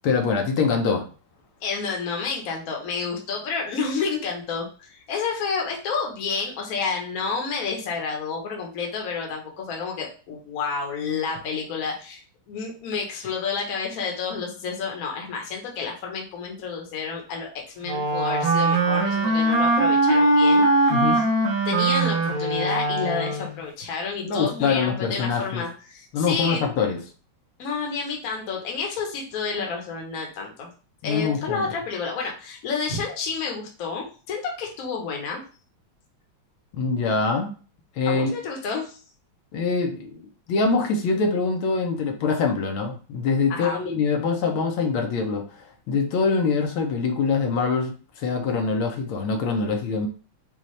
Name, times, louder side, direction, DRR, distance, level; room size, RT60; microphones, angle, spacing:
voice 1, 0.0-1.0 20.9-21.2 24.2-25.6 26.1-27.0 31.0-31.7 36.7-37.5 38.0-38.3 39.5-50.1, left 4 dB, 80° left, 3 dB, 1.5 m, -24 dB
voice 2, 1.6-12.2 12.5-17.5 17.7-21.0 21.6-26.6 27.6-30.7 31.0-35.4 38.1-39.0 43.5-43.8, left 5 dB, 55° left, 0 dB, 1.2 m, -30 dB
Wind instrument woodwind instrument, 17.8-23.6, right 2 dB, 65° right, 1.4 m, -21 dB
5.4 x 2.4 x 3.1 m, 0.37 s
omnidirectional pair, 2.3 m